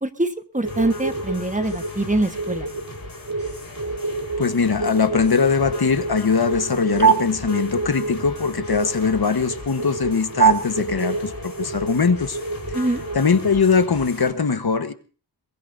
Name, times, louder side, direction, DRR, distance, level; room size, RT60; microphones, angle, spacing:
voice 1, 0.0-2.7 12.7-13.0, right 2 dB, 20° right, 8 dB, 1.2 m, -24 dB
sound 1, 0.5-13.4, right 5 dB, 45° right, 2.0 m, -26 dB
sound 2, 0.6-14.3, left 3 dB, 45° left, 4.1 m, -38 dB
voice 2, 4.4-12.4 13.1-14.9, left 5 dB, 65° left, 9 dB, 1.3 m, -21 dB
22.5 x 20.5 x 2.7 m, 0.38 s
wide cardioid pair, 85°, 41 cm